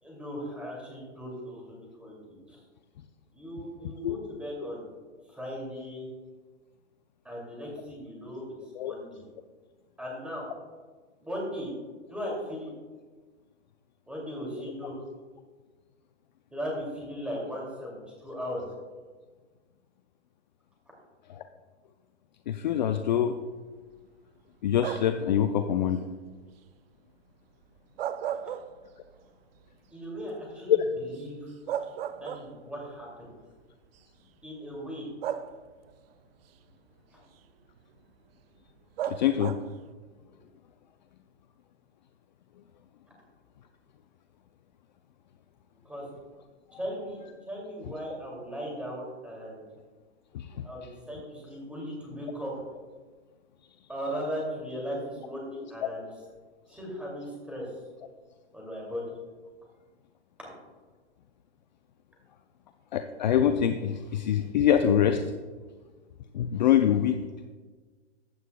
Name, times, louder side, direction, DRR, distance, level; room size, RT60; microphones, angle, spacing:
voice 1, 0.0-2.6 3.3-4.9 5.3-6.1 7.2-8.4 8.8-9.2 10.0-10.5 11.2-11.7 12.1-12.7 14.1-15.0 16.5-18.6 29.9-31.5 32.1-33.3 34.4-35.1 45.8-46.0 46.7-49.7 50.6-52.5 53.9-56.1 56.7-57.7 58.5-59.0, equal, 5° right, -3 dB, 2.4 m, -37 dB
voice 2, 22.5-23.4 24.6-26.1 30.7-30.8 39.0-39.5 50.3-50.5 55.8-55.9 62.9-65.2 66.3-67.2, left 10 dB, 40° left, 8 dB, 0.4 m, -24 dB
sound 1, 24.8-25.3 27.8-29.2 29.6-29.7 31.2-31.3 31.7-32.8 33.8-34.0 35.2-35.9 39.0-39.8, right 10 dB, 55° right, 0.5 m, -35 dB
15.0 x 9.3 x 2.2 m, 1.4 s
hypercardioid pair, 150°, 36 cm